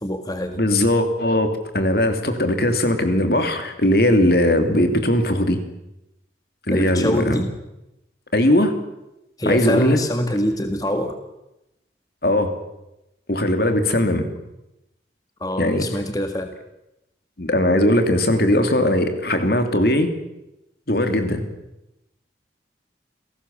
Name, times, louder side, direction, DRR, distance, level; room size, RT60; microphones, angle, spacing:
voice 1, 0.0-0.6 6.7-7.5 9.4-11.2 15.4-16.5, left 1 dB, 20° left, 6 dB, 1.6 m, -24 dB
voice 2, 0.6-5.6 6.7-7.4 8.3-8.7 9.4-10.0 12.2-12.5 13.3-14.3 15.6-15.9 17.4-20.1 20.9-21.5, left 1 dB, 60° left, 7 dB, 3.0 m, -19 dB
29.0 x 18.0 x 7.3 m, 0.91 s
head